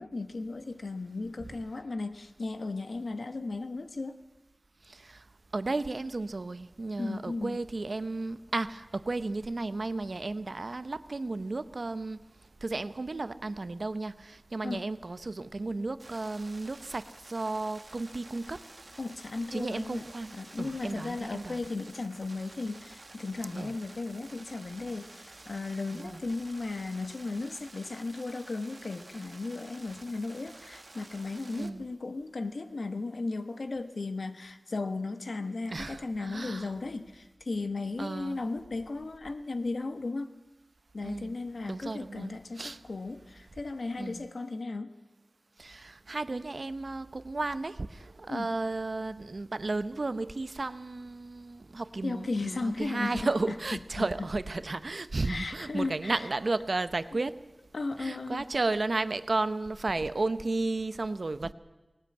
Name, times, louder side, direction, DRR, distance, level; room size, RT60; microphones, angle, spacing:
voice 1, 0.0-4.2 7.0-7.6 14.6-14.8 19.0-20.1 20.3-40.3 40.9-44.9 48.3-48.5 52.0-53.3 53.7-54.1 55.2-56.2 57.7-58.4, left 3 dB, 80° left, 8 dB, 1.4 m, -35 dB
voice 2, 4.9-5.2 5.5-12.2 12.6-18.6 19.5-21.7 23.5-23.7 25.9-26.2 31.6-31.8 35.7-36.7 38.0-38.4 41.0-41.3 41.7-42.8 44.0-44.3 45.6-57.4 58.0-61.5, right 3 dB, 65° right, 13 dB, 0.8 m, -33 dB
sound 1, 16.0-31.7, right 2 dB, 45° right, 1.2 m, -51 dB
19.0 x 18.5 x 8.7 m, 1.1 s
wide cardioid pair, 60°, 0 cm